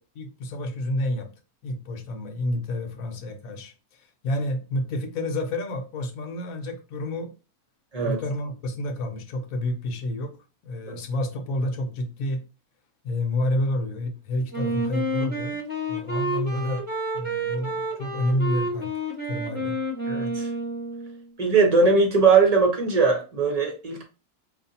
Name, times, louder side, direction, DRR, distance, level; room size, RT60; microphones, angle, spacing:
voice 1, 0.2-1.3 1.6-7.3 8.0-10.3 10.6-12.4 13.0-15.6 15.9-16.8 17.1-18.9 19.3-19.8, left 1 dB, 70° left, 1.1 m, -29 dB
Wind instrument woodwind instrument, 14.5-21.2, right 1 dB, 10° right, 1.0 m, -30 dB
voice 2, 20.1-20.5 21.4-24.0, right 4 dB, 35° right, 0.7 m, -20 dB
4.7 x 2.5 x 2.7 m
omnidirectional pair, 1.6 m